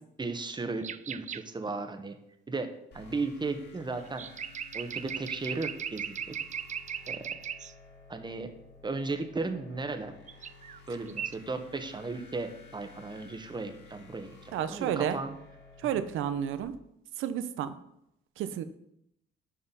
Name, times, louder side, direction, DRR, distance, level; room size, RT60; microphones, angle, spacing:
voice 1, 0.2-2.2 2.5-2.7 2.9-4.3 4.7-6.2 7.1-7.3 8.1-8.5 8.8-10.1 10.9-15.4, right 3 dB, 20° right, 7 dB, 1.1 m, -35 dB
sound 1, 0.8-1.4 4.1-7.7 10.3-10.8 11.1-11.4, right 8 dB, 40° right, 0.4 m, -38 dB
sound 2, 2.9-16.6, left 3 dB, 60° left, 1.8 m, -54 dB
voice 2, 14.5-15.2 15.8-16.8 17.2-17.8 18.4-18.6, right 9 dB, 85° right, 12 dB, 0.7 m, -31 dB
6.8 x 5.5 x 5.6 m, 0.78 s
cardioid pair, 90°, 20 cm